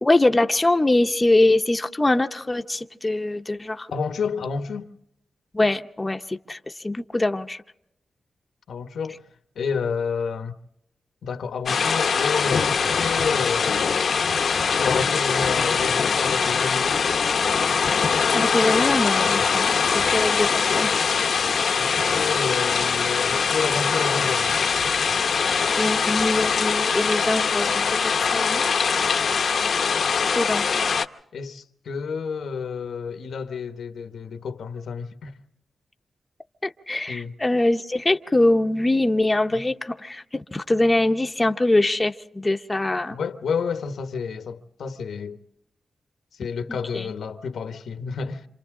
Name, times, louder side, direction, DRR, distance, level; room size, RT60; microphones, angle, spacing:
voice 1, 0.0-3.9 5.5-6.6 6.8-7.6 18.3-20.9 25.8-28.6 30.3-30.8 36.6-43.2 46.7-47.1, left 2 dB, 15° left, 0.8 m, -23 dB
voice 2, 3.9-4.9 8.7-9.2 9.5-10.6 11.2-13.9 14.8-17.0 19.4-19.6 21.8-24.6 31.3-35.3 37.1-37.3 39.5-39.6 43.1-45.4 46.4-48.5, left 5 dB, 85° left, 1.1 m, -30 dB
sound 1, 11.7-31.1, left 6 dB, 65° left, 0.8 m, -22 dB
27.5 x 27.5 x 3.7 m
wide cardioid pair, 115°, 0 cm